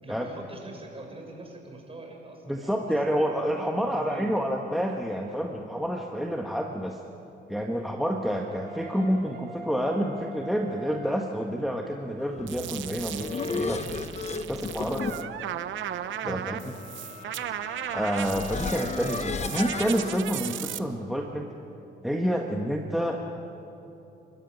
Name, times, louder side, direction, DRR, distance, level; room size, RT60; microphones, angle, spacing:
voice 1, 0.0-3.3 3.8-4.4 14.4-15.3 16.2-16.5, right 2 dB, 30° right, 1 dB, 6.3 m, -44 dB
voice 2, 2.5-7.0 7.5-13.8 14.3-15.0 16.2-16.7 17.9-21.5 22.0-23.3, equal, ahead, 0 dB, 1.6 m, -28 dB
sound 1, 8.2-11.4 12.2-18.0, right 2 dB, 55° right, 5.0 m, -45 dB
sound 2, 12.5-20.8, right 11 dB, 75° right, 0.8 m, -36 dB
sound 3, 12.7-20.2, left 4 dB, 35° left, 1.1 m, -35 dB
30.0 x 13.5 x 9.5 m, 2.9 s
cardioid pair, 90°, 20 cm